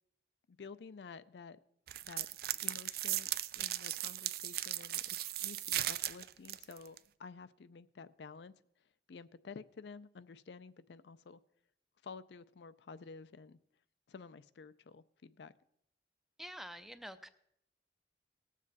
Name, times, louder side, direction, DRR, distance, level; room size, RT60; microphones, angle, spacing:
voice 1, 0.5-1.6 2.1-2.3 2.6-3.3 3.5-8.5 9.1-11.4 12.0-13.6 14.1-15.5, left 5 dB, 70° left, 14 dB, 0.4 m, -51 dB
sound 1, 1.9-7.0, right 14 dB, 60° right, 0.4 m, -37 dB
voice 2, 16.4-17.3, equal, ahead, 10 dB, 0.5 m, -47 dB
18.5 x 7.4 x 4.0 m, 0.76 s
head